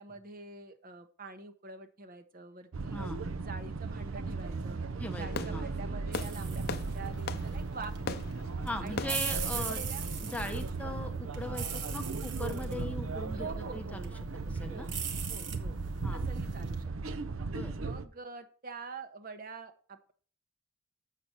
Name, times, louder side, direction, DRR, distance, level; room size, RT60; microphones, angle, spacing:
voice 1, 0.0-3.0 3.4-4.8 5.1-8.4 8.8-10.1 13.3-14.0 14.7-14.9 15.3-15.8 16.1-17.2 17.8-20.1, right 3 dB, 45° right, 8 dB, 0.9 m, -46 dB
sound 1, 2.7-18.1, right 4 dB, 80° right, 0.6 m, -37 dB
Fireworks, 5.0-10.6, left 5 dB, 50° left, 0.5 m, -42 dB
voice 2, 5.0-5.7 8.7-9.8 10.2-14.1 14.5-14.9 16.0-16.2 17.4-17.7, left 2 dB, 5° left, 6 dB, 0.6 m, -40 dB
sound 2, 6.1-16.8, right 6 dB, 60° right, 1.1 m, -41 dB
7.6 x 6.8 x 4.3 m, 0.43 s
head